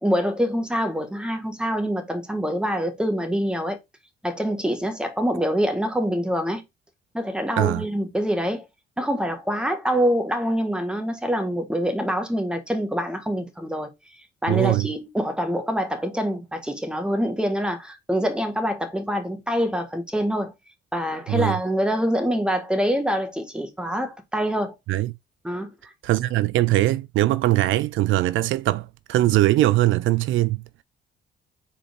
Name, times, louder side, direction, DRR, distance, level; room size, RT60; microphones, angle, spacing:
voice 1, 0.0-3.8 4.2-6.6 7.1-8.6 9.0-13.9 14.4-20.5 20.9-24.7 25.4-25.9, equal, 5° right, 1.5 m, -25 dB
voice 2, 14.5-14.9 21.3-21.6 24.9-25.1 26.0-30.6, right 16 dB, 80° right, 0.4 m, -21 dB
4.5 x 4.2 x 5.2 m
cardioid pair, 90°, 20 cm